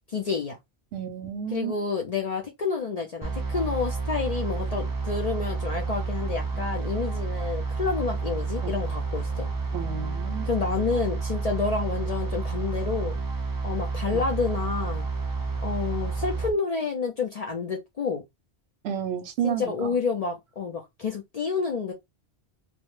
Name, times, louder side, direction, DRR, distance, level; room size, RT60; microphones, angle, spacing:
voice 1, 0.1-0.6 1.5-9.5 10.5-13.1 13.6-15.1 15.6-18.2 19.4-21.9, left 5 dB, 55° left, 0.4 m, -29 dB
voice 2, 0.9-1.8 8.6-8.7 9.7-10.5 14.1-14.2 18.8-20.0, right 9 dB, 75° right, 0.8 m, -31 dB
sound 1, 3.2-16.5, right 4 dB, 35° right, 0.3 m, -30 dB
2.1 x 2.1 x 3.0 m
omnidirectional pair, 1.1 m